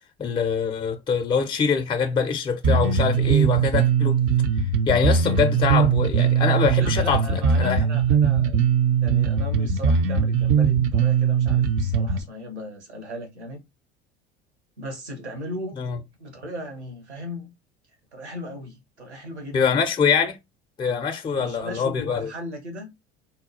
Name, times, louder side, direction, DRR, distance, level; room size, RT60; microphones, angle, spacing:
voice 1, 0.2-4.2 4.9-7.2 7.6-7.8 15.8-16.0 19.5-20.4 20.8-22.3, left 6 dB, 15° left, 0.5 m, -24 dB
Bass guitar, 2.6-12.2, right 6 dB, 40° right, 0.5 m, -20 dB
voice 2, 6.8-8.7 9.0-13.6 14.8-15.8 16.2-17.5 18.1-19.9 21.3-22.9, equal, 80° right, 1.0 m, -37 dB
3.6 x 2.2 x 2.8 m
figure-of-eight pair, 65°, 33 cm